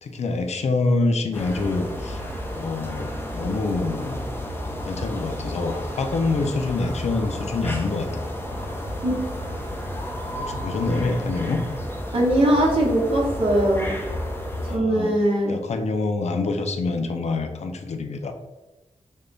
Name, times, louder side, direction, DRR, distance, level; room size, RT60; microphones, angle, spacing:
voice 1, 0.0-4.2 4.8-8.4 10.4-11.6 14.6-15.1 15.5-18.3, left 3 dB, 65° left, 6 dB, 0.5 m, -26 dB
sound 1, 1.3-14.8, equal, 20° left, 0.6 m, -31 dB
voice 2, 12.1-13.9 14.7-15.5, right 1 dB, 50° right, -4 dB, 0.9 m, -20 dB
3.4 x 2.2 x 3.8 m, 1.1 s
wide cardioid pair, 80°, 12 cm